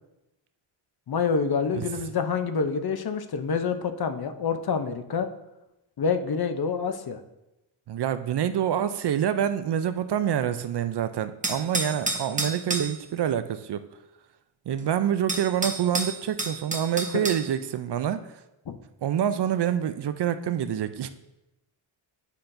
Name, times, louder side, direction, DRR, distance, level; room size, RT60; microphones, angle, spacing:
voice 1, 1.1-5.3 6.0-7.2 18.7-18.8, left 5 dB, 50° left, 8 dB, 0.7 m, -27 dB
voice 2, 7.9-13.8 14.7-18.4 19.0-21.1, right 9 dB, 55° right, 11 dB, 0.5 m, -27 dB
sound 1, 11.4-12.9 14.8-14.9 15.3-17.4, right 2 dB, 15° right, 0.8 m, -29 dB
9.9 x 5.7 x 2.6 m, 0.95 s
wide cardioid pair, 105°, 49 cm